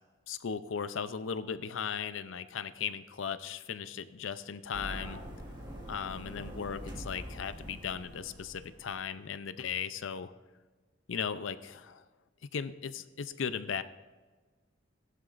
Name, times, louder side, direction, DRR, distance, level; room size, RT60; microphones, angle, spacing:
voice 1, 0.3-5.2 5.9-10.3 11.1-12.0 12.5-13.8, left 6 dB, 80° left, 12 dB, 0.5 m, -37 dB
sound 1, 4.7-9.0, equal, 25° right, 1.8 m, -44 dB
15.5 x 11.0 x 2.5 m, 1.3 s
head